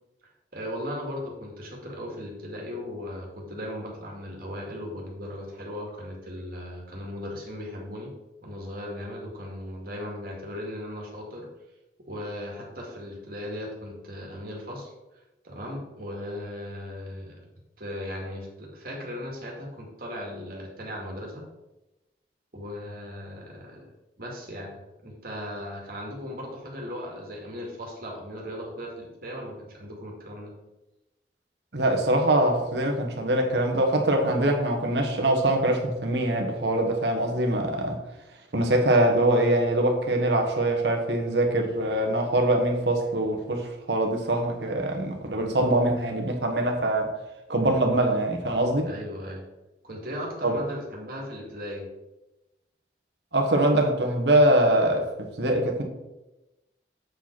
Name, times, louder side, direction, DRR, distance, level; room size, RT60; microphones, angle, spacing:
voice 1, 0.5-8.1 8.4-11.5 12.1-15.2 15.4-17.4 17.8-21.4 22.5-23.9 24.2-24.7 25.0-30.5 48.9-49.4 49.8-51.9, left 1 dB, 55° right, 2.0 m, -37 dB
voice 2, 31.7-38.0 38.5-47.1 47.5-48.9 50.4-50.5 53.3-55.8, right 1 dB, 75° right, 1.3 m, -23 dB
7.7 x 4.9 x 4.5 m
head